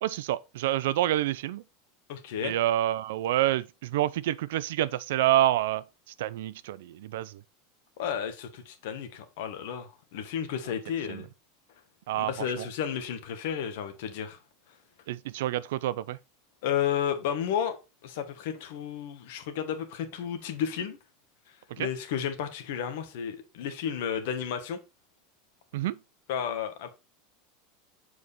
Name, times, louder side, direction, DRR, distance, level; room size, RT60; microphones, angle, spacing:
voice 1, 0.0-1.6 2.4-5.8 6.2-7.4 11.1-11.2 12.1-12.3 12.6-12.7 15.1-16.2 21.7-21.9 25.7-26.0, right 13 dB, 75° right, 0.4 m, -28 dB
voice 2, 2.1-2.5 8.0-11.3 12.2-14.4 16.6-17.8 18.0-21.0 21.8-24.8 26.3-26.9, left 8 dB, 60° left, 1.4 m, -32 dB
7.3 x 4.7 x 4.1 m
supercardioid pair, 175°, 0 cm